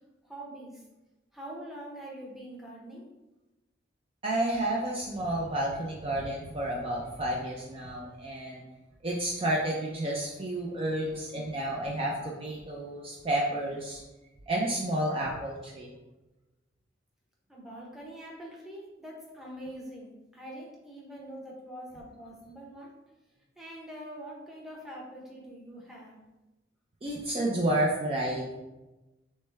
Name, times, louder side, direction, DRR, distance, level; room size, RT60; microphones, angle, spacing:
voice 1, 0.2-0.8 1.3-3.1 17.5-22.9 23.6-26.2, right 1 dB, ahead, -4 dB, 0.8 m, -44 dB
voice 2, 4.2-8.6 9.0-14.0 14.5-15.9 27.0-28.5, right 1 dB, 30° right, -3 dB, 0.4 m, -30 dB
6.3 x 2.1 x 3.3 m, 1.1 s
head